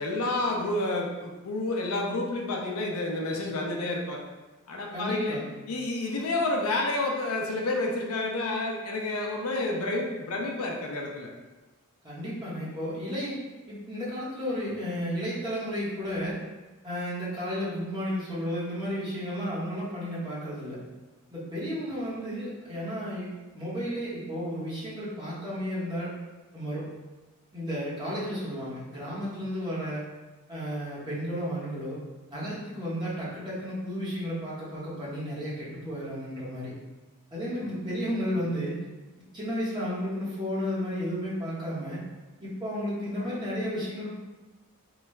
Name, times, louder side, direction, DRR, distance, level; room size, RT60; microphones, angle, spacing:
voice 1, 0.0-4.2 4.7-5.4 5.7-11.3 43.2-43.3, left 2 dB, 80° left, 0 dB, 0.6 m, -29 dB
voice 2, 4.9-5.5 12.0-13.4 13.7-16.4 16.8-20.8 21.3-26.2 26.5-26.9 27.5-30.0 30.5-32.0 32.3-36.7 37.3-38.8 39.3-42.0 42.4-44.1, equal, 20° right, -9 dB, 1.1 m, -33 dB
3.9 x 2.3 x 3.2 m, 1.1 s
head